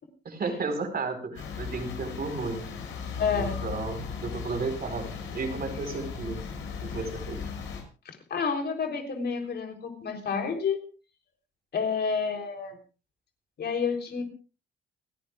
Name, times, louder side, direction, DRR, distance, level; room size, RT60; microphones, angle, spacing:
voice 1, 0.2-2.6 3.3-6.4 6.8-7.4, right 4 dB, 50° right, 6 dB, 4.4 m, -33 dB
sound 1, 1.3-7.8, left 6 dB, 80° left, 6.4 m, -37 dB
voice 2, 3.2-3.6 8.3-10.8 11.7-12.8 13.6-14.2, left 5 dB, 55° left, 3 dB, 3.7 m, -29 dB
29.5 x 10.5 x 2.4 m, 0.35 s
cardioid pair, 90°, 20 cm